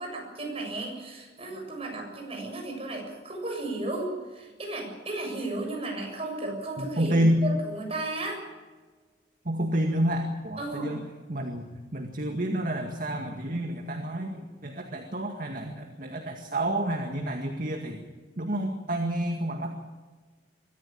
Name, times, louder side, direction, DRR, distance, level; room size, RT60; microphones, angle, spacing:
voice 1, 0.0-8.5 10.6-11.0, right 2 dB, 35° right, 1 dB, 7.3 m, -34 dB
voice 2, 6.8-7.4 9.5-11.0 11.3-18.0 18.4-19.7, right 1 dB, 50° right, 4 dB, 2.0 m, -29 dB
23.5 x 14.5 x 8.7 m, 1.3 s
head